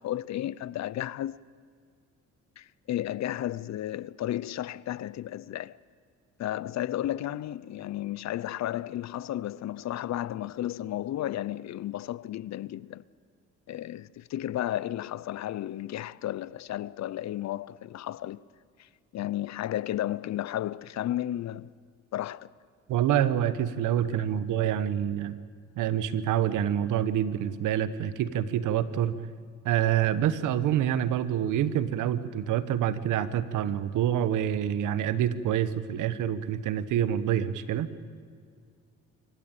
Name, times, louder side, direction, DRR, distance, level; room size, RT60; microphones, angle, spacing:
voice 1, 0.0-1.4 2.6-5.8 6.4-13.0 13.7-18.4 18.8-21.7 22.1-22.5, left 13 dB, 65° left, 0.6 m, -33 dB
voice 2, 22.9-25.4 25.8-29.2 29.6-37.9, right 10 dB, 85° right, 1.2 m, -27 dB
26.0 x 15.0 x 8.9 m
cardioid pair, 90°, 30 cm